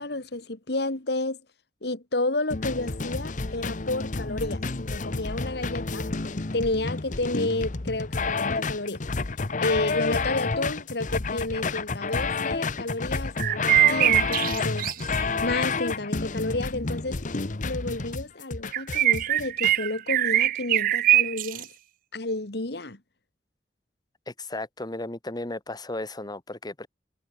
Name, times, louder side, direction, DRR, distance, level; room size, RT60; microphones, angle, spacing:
voice 1, 0.0-1.4 1.8-6.0 6.5-9.0 9.6-14.9 15.4-17.2 17.6-21.7 22.1-23.0, left 2 dB, 65° left, 2.1 m, -31 dB
sound 1, 2.5-19.7, left 4 dB, 45° left, 1.0 m, -30 dB
sound 2, 13.4-15.3 18.7-21.6, right 13 dB, 50° right, 0.3 m, -22 dB
voice 2, 24.3-26.9, left 2 dB, 25° left, 1.3 m, -35 dB
head